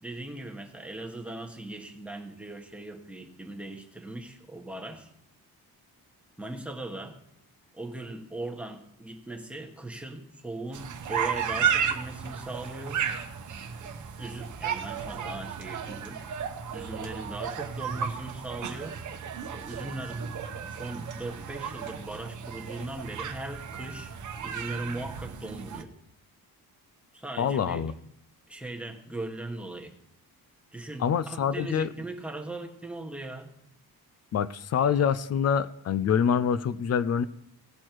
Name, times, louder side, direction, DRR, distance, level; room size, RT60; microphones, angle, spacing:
voice 1, 0.0-5.1 6.4-7.2 7.7-13.1 14.2-16.2 16.7-19.0 19.5-20.3 20.7-24.1 24.4-25.9 27.1-27.9 28.5-29.9 30.7-33.5, right 2 dB, 5° right, 1 dB, 1.2 m, -39 dB
sound 1, 10.7-25.8, right 7 dB, 50° right, 1.0 m, -34 dB
voice 2, 27.4-27.9 31.0-31.9 34.3-37.2, left 7 dB, 45° left, 15 dB, 0.4 m, -25 dB
18.0 x 6.3 x 4.5 m, 0.74 s
wide cardioid pair, 180°, 38 cm